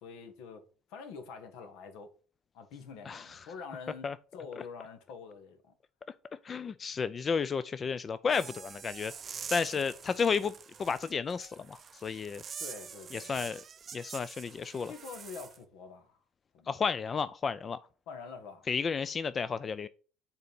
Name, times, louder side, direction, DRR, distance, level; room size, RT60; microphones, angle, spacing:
voice 1, 0.0-2.1 2.5-4.1 4.3-5.7 9.7-9.8 12.6-13.6 14.9-16.2 16.5-16.7 18.1-18.6, left 5 dB, 75° left, 1.3 m, -46 dB
voice 2, 3.1-3.4 4.0-4.1 6.4-9.1 9.5-10.5 10.8-12.4 13.1-13.6 13.9-14.9 16.7-17.8 18.7-19.9, left 5 dB, 30° left, 0.3 m, -32 dB
sound 1, 8.3-15.6, right 7 dB, 35° right, 0.4 m, -45 dB
6.8 x 4.1 x 5.2 m
supercardioid pair, 110°, 0 cm